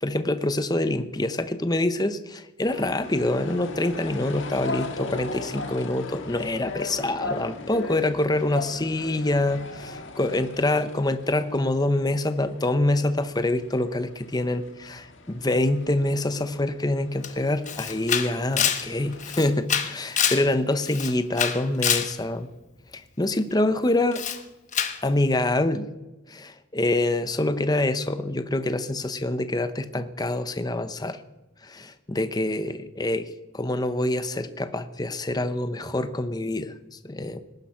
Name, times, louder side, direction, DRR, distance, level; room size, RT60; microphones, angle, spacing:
voice 1, 0.0-22.5 22.9-24.2 25.0-25.9 26.3-31.2 31.6-37.4, left 1 dB, 20° left, 11 dB, 0.8 m, -26 dB
sound 1, 2.6-19.6, left 3 dB, 65° left, 1.6 m, -39 dB
Camera, 17.2-17.3 17.7-20.5 20.8-22.1 24.1-24.4 24.7-25.0, left 8 dB, 35° left, 1.1 m, -26 dB
19.0 x 10.5 x 5.7 m, 1.0 s
head